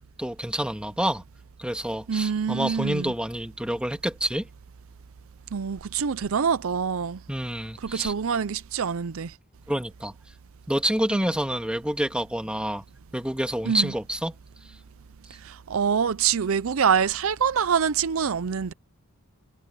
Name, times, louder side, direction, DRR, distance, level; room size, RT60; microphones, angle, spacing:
voice 1, 0.2-1.2 1.6-4.5 7.3-8.1 9.7-10.1 10.7-12.8 13.1-14.3, right 1 dB, 5° right, 2.2 m, -28 dB
voice 2, 2.1-3.1 5.5-7.2 7.8-9.3 13.7-13.9 15.3-18.7, right 7 dB, 65° right, 0.5 m, -25 dB
head